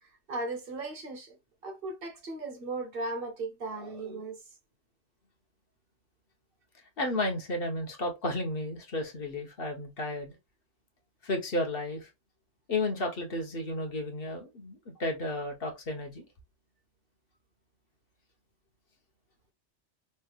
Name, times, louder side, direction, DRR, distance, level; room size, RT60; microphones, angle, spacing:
voice 1, 0.3-1.4 1.6-4.4, right 2 dB, 55° right, 1.1 m, -36 dB
voice 2, 7.0-10.3 11.2-12.1 12.7-16.2, left 1 dB, 55° left, 1.2 m, -33 dB
5.4 x 3.1 x 2.3 m
omnidirectional pair, 1.2 m